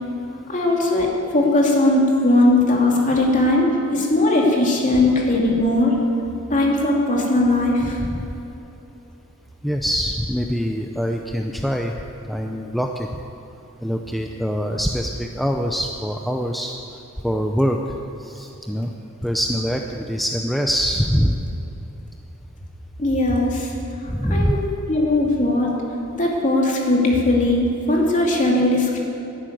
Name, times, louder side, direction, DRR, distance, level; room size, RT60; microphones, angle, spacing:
voice 1, 0.5-5.9 6.5-8.0 23.0-23.7 24.3-24.6 24.9-25.7 26.1-29.0, left 2 dB, 35° left, -2 dB, 2.6 m, -19 dB
voice 2, 9.6-11.9 12.3-13.1 13.8-16.7 17.2-17.8 18.2-18.9 19.2-21.5 24.1-24.5, equal, ahead, 2 dB, 0.5 m, -23 dB
11.5 x 11.0 x 9.2 m, 3.0 s
head